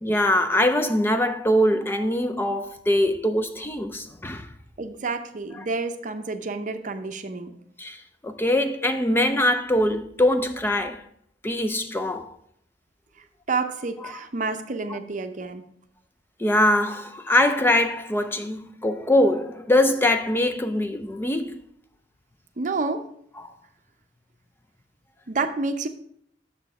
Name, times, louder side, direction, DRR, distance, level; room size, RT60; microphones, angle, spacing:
voice 1, 0.0-4.5 7.8-11.0 11.4-12.4 14.0-14.2 14.9-15.0 16.4-21.6 23.4-23.5, left 1 dB, 10° left, 0.4 m, -23 dB
voice 2, 4.8-7.5 13.5-15.6 22.6-23.1 25.3-25.9, right 3 dB, 45° right, 0.6 m, -29 dB
6.6 x 6.2 x 4.8 m
head